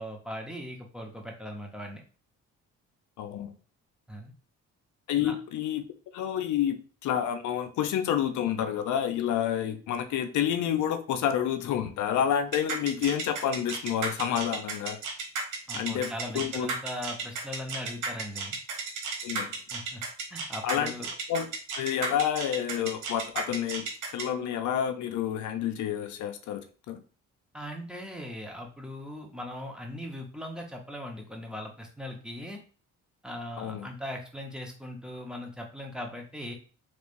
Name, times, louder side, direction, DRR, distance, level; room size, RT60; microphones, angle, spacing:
voice 1, 0.0-2.0 4.1-4.3 5.2-5.4 15.7-18.6 19.7-20.0 20.3-21.1 27.5-32.6 33.2-36.5, left 1 dB, 5° right, 1 dB, 0.9 m, -39 dB
voice 2, 3.2-3.5 5.1-5.8 6.1-6.8 7.0-15.0 15.7-16.7 19.2-19.5 20.6-20.9 21.3-21.5 21.7-23.8 24.1-27.0 33.6-33.9, left 9 dB, 75° left, 8 dB, 0.5 m, -29 dB
sound 1, 12.5-24.2, right 4 dB, 85° right, 1.2 m, -33 dB
3.3 x 3.2 x 2.6 m, 0.38 s
cardioid pair, 90°, 30 cm